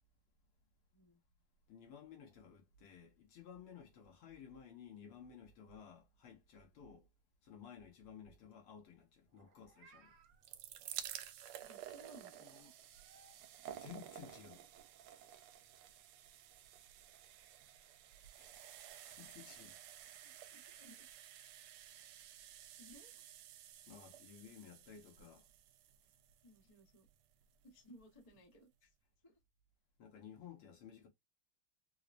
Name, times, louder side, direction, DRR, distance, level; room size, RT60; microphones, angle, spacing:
voice 1, 1.7-7.1 7.4-10.2 13.8-14.6 18.4-18.6 19.1-19.8 21.9-22.1 23.9-25.5 30.0-31.1, left 8 dB, 75° left, 2.1 m, -55 dB
Meow, 9.3-10.4 12.3-13.4, right 4 dB, 60° right, 1.1 m, -66 dB
sound 1, 10.2-27.2 28.0-28.1 28.3-28.4, right 11 dB, 80° right, 1.4 m, -53 dB
voice 2, 11.6-12.7 20.2-21.1 22.8-23.2 26.4-27.1 27.6-28.9 29.2-29.4, left 1 dB, 45° left, 0.4 m, -61 dB
4.7 x 2.1 x 2.5 m
omnidirectional pair, 2.4 m